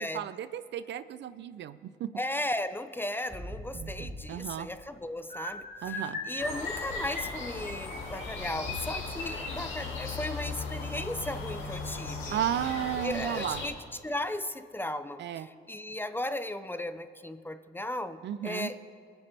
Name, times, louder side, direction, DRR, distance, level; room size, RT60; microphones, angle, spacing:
voice 1, 0.0-2.1 3.7-4.7 5.8-6.2 12.3-13.6 15.2-15.5 18.2-18.7, right 10 dB, 65° right, 14 dB, 0.4 m, -34 dB
voice 2, 2.1-12.4 13.0-13.8 14.0-18.8, left 1 dB, 10° left, 11 dB, 0.4 m, -36 dB
sound 1, 3.3-5.1 5.5-8.7, equal, 15° right, 1.7 m, -46 dB
sound 2, 5.3-12.5 13.2-13.5 13.7-14.0 14.3-14.5, left 2 dB, 55° left, 3.1 m, -40 dB
sound 3, 6.4-13.7, left 3 dB, 80° left, 2.0 m, -38 dB
21.0 x 7.0 x 3.4 m, 2.4 s
cardioid pair, 90°, 20 cm